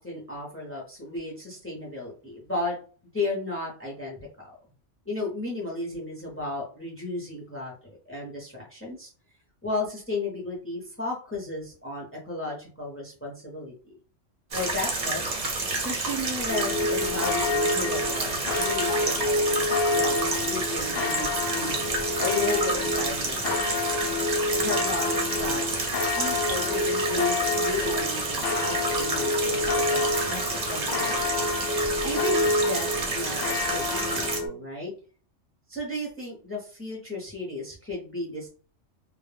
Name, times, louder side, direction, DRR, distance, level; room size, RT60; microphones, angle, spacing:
voice 1, 0.0-2.8 3.1-4.5 5.1-9.1 9.6-14.0 14.5-15.3 15.8-21.8 22.2-23.8 24.6-25.7 26.2-30.4 30.7-31.3 32.0-33.4 33.7-34.9 35.7-38.5, left 2 dB, 15° left, -1 dB, 0.4 m, -34 dB
sound 1, 14.5-34.4, right 3 dB, 45° right, 0.6 m, -29 dB
sound 2, 16.5-34.5, left 3 dB, 80° left, 0.9 m, -28 dB
2.2 x 2.0 x 3.1 m, 0.40 s
omnidirectional pair, 1.3 m